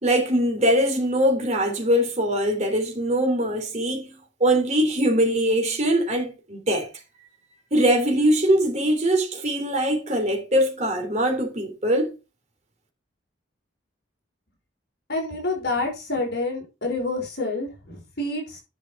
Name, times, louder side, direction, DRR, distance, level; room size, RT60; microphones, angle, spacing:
voice 1, 0.0-6.9 7.7-12.1, right 1 dB, 35° right, 3.2 m, -22 dB
voice 2, 15.1-18.6, left 2 dB, 55° left, 5.5 m, -28 dB
11.0 x 6.1 x 4.7 m
head